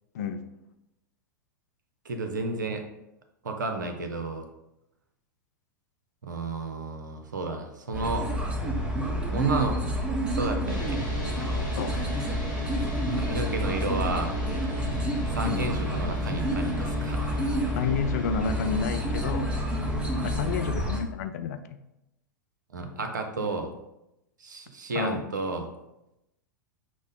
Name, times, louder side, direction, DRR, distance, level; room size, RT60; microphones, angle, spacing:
voice 1, 0.1-0.5 11.8-12.0 15.4-15.6 17.7-19.5 20.2-21.8 25.0-25.2, left 6 dB, 55° left, 9 dB, 0.4 m, -30 dB
voice 2, 2.0-2.8 3.4-4.5 6.2-8.3 9.3-9.8 10.3-11.1 13.2-14.4 15.4-17.6 22.7-23.7 24.4-25.7, right 3 dB, 70° right, 5 dB, 0.6 m, -32 dB
sound 1, 7.9-21.0, right 1 dB, 10° right, 0.6 m, -29 dB
sound 2, 10.7-20.7, left 3 dB, 85° left, 1.5 m, -37 dB
6.0 x 2.0 x 3.8 m, 0.89 s
figure-of-eight pair, 95°, 10 cm